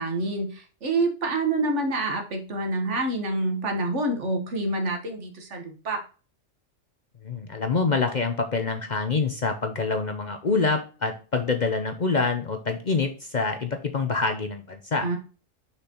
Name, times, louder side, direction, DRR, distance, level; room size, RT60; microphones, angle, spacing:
voice 1, 0.0-6.0 15.0-15.2, right 2 dB, 65° right, 4 dB, 1.7 m, -27 dB
voice 2, 7.2-15.1, left 4 dB, 45° left, 6 dB, 0.7 m, -26 dB
6.5 x 6.0 x 3.0 m, 0.35 s
omnidirectional pair, 1.3 m